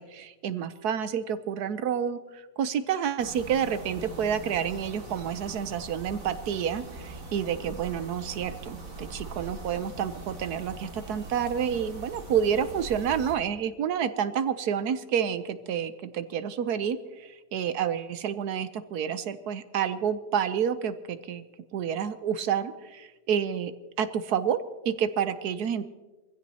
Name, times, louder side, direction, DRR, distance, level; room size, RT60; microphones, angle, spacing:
voice 1, 0.0-21.4 21.7-23.7 24.0-24.6 24.8-25.8, right 8 dB, 70° right, 12 dB, 1.2 m, -29 dB
sound 1, 3.2-13.3, right 2 dB, 50° right, 2.5 m, -42 dB
23.5 x 15.5 x 2.8 m, 1.2 s
omnidirectional pair, 1.8 m